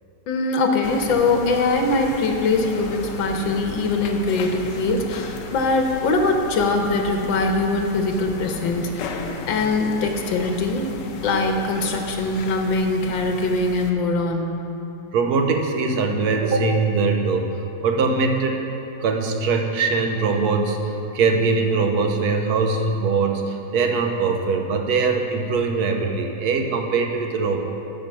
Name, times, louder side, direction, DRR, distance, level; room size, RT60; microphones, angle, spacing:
voice 1, 0.3-9.2 9.5-10.9 11.2-14.6, left 3 dB, 90° left, 4 dB, 1.7 m, -22 dB
sound 1, 0.8-13.9, left 3 dB, 75° left, 1.3 m, -35 dB
voice 2, 15.1-17.4 17.8-18.6 19.0-20.8 21.1-27.6, right 4 dB, 65° right, 4 dB, 1.2 m, -21 dB
9.1 x 5.5 x 7.2 m, 3.0 s
omnidirectional pair, 2.0 m